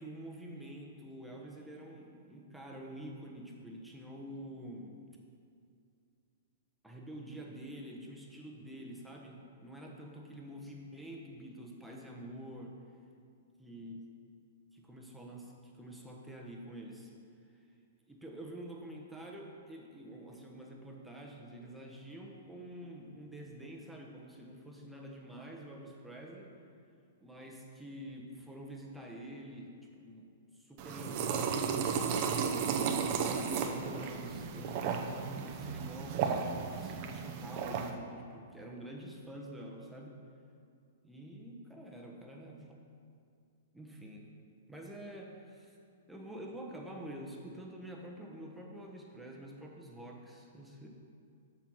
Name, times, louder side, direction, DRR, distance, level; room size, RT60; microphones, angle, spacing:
voice 1, 0.0-5.0 6.8-12.8 13.6-14.0 14.7-17.1 18.1-26.5 27.2-31.7 33.2-36.4 36.7-40.2 41.0-42.7 43.7-44.3 44.7-45.8 46.1-50.9, right 1 dB, 5° right, -1 dB, 1.1 m, -47 dB
sound 1, 30.8-37.9, right 6 dB, 45° right, 0.7 m, -34 dB
7.3 x 5.8 x 5.6 m, 2.4 s
hypercardioid pair, 120°, 0 cm